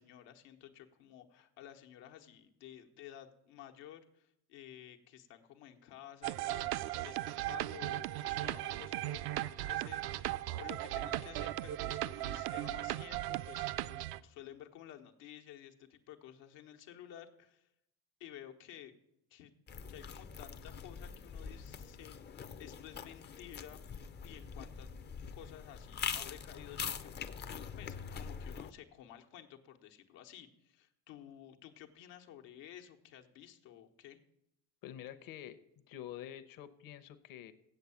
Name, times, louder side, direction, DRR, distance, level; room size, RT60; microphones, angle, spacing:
voice 1, 0.0-6.7 7.0-17.7 18.2-18.9 19.3-19.5 19.9-23.8 24.2-24.9 25.3-34.2, left 11 dB, 85° left, 3 dB, 1.2 m, -53 dB
sound 1, 6.2-14.2, right 15 dB, 60° right, 0.5 m, -37 dB
sound 2, 19.7-28.7, left 6 dB, 25° left, 0.5 m, -44 dB
voice 2, 34.8-35.6 35.9-37.5, left 11 dB, 55° left, 10 dB, 0.9 m, -47 dB
7.9 x 7.6 x 7.0 m, 0.81 s
cardioid pair, 125°, 42 cm